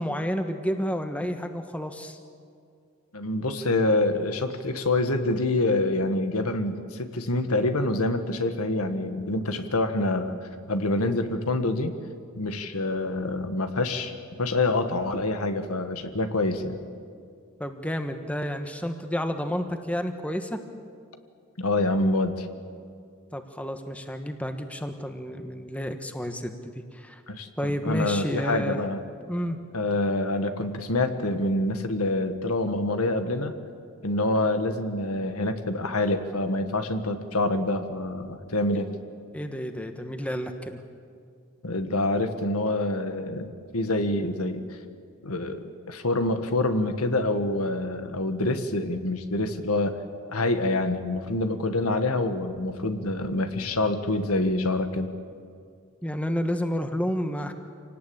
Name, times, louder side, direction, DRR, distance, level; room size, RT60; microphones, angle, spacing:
voice 1, 0.0-2.2 17.6-20.6 23.3-27.2 27.6-28.8 29.2-29.6 38.7-38.8 39.3-40.8 56.0-57.5, equal, 5° left, 6 dB, 1.3 m, -30 dB
voice 2, 3.1-10.4 10.7-11.9 12.3-16.8 21.6-22.5 27.3-29.0 29.7-33.5 34.0-38.9 41.6-43.5 43.7-44.7 45.2-50.0 50.3-55.1, left 2 dB, 90° left, 8 dB, 1.7 m, -26 dB
27.0 x 18.5 x 8.8 m, 2.3 s
head